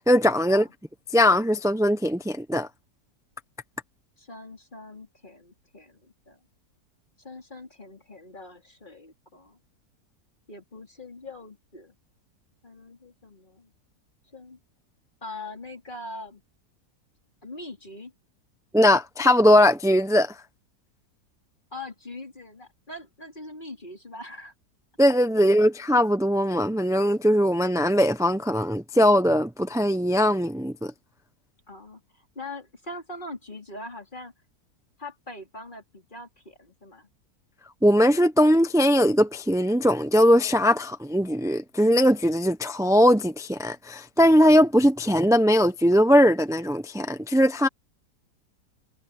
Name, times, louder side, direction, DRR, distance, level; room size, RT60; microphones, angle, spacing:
voice 1, 0.1-0.6 1.1-2.7 18.7-20.3 25.0-30.9 37.8-47.7, equal, 5° right, 0.4 m, -20 dB
voice 2, 4.2-6.4 7.2-9.6 10.5-11.9 12.6-13.7 14.3-14.6 15.2-16.4 17.4-18.1 21.7-24.5 25.4-25.6 31.7-34.3 35.0-37.1, left 2 dB, 30° left, 4.3 m, -42 dB
omnidirectional pair, 1.7 m